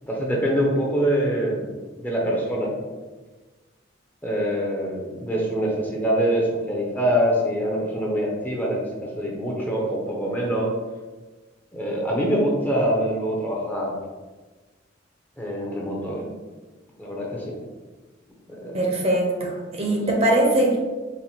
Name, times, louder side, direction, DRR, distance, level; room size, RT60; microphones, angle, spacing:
voice 1, 0.0-1.6 2.0-2.7 4.2-10.7 11.7-13.9 15.4-16.3 17.0-17.6 18.6-18.8, equal, 10° left, -3 dB, 0.6 m, -24 dB
voice 2, 18.7-20.8, right 1 dB, 35° right, 0 dB, 0.6 m, -21 dB
4.1 x 2.5 x 2.8 m, 1.3 s
head